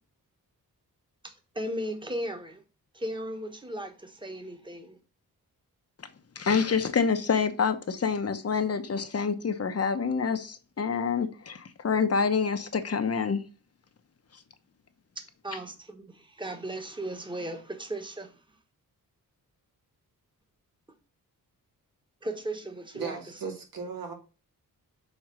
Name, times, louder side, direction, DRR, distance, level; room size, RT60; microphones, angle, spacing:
voice 1, 1.2-2.6 2.9-5.0 15.2-18.3 22.2-23.2, right 1 dB, 15° right, 1.4 m, -36 dB
voice 2, 6.4-13.4, left 5 dB, 45° left, 0.9 m, -27 dB
voice 3, 22.9-24.1, right 5 dB, 75° right, 2.6 m, -36 dB
6.6 x 4.3 x 6.0 m
wide cardioid pair, 120°, 35 cm